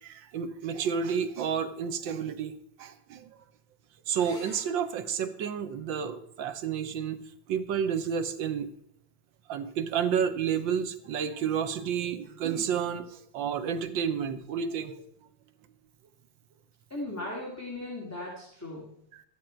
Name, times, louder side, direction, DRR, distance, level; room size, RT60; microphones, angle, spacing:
voice 1, 0.0-3.4 4.1-7.2 7.5-8.7 9.5-15.0 19.1-19.2, right 7 dB, 75° right, 10 dB, 1.5 m, -31 dB
sound 1, 4.1-9.1 11.0-11.6 15.1-15.2 15.5-15.6, left 1 dB, 30° left, 4.1 m, -57 dB
voice 2, 16.9-18.9, left 2 dB, 10° left, -4 dB, 2.1 m, -37 dB
13.0 x 10.5 x 4.5 m, 0.70 s
omnidirectional pair, 2.1 m